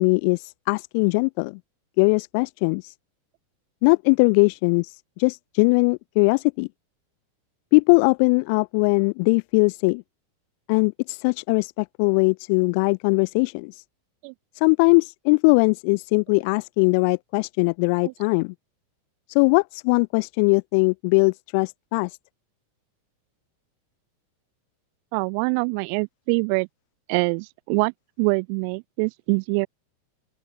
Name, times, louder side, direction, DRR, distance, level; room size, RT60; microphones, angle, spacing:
voice 1, 0.0-1.6 2.0-2.9 3.8-6.7 7.7-10.0 10.7-13.8 14.5-18.5 19.3-22.2, left 33 dB, 45° left, 1.7 m, -20 dB
voice 2, 25.1-26.7 27.1-27.9 28.2-29.7, right 40 dB or more, 45° right, 0.6 m, -24 dB
open air
figure-of-eight pair, 90°, 0 cm